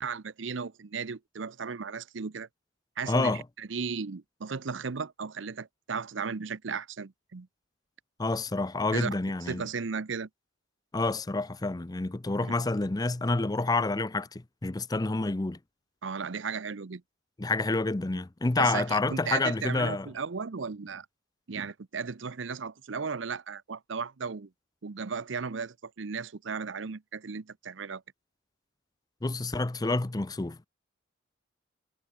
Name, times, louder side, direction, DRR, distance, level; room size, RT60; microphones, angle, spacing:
voice 1, 0.0-2.5 3.0-7.5 8.9-9.1 9.5-10.3 16.0-17.0 18.6-21.1 21.5-24.5 24.8-28.0, right 5 dB, 70° right, 0.7 m, -35 dB
voice 2, 3.1-3.4 8.2-9.6 10.9-15.6 17.4-20.1 29.2-30.6, left 3 dB, 20° left, 0.5 m, -28 dB
head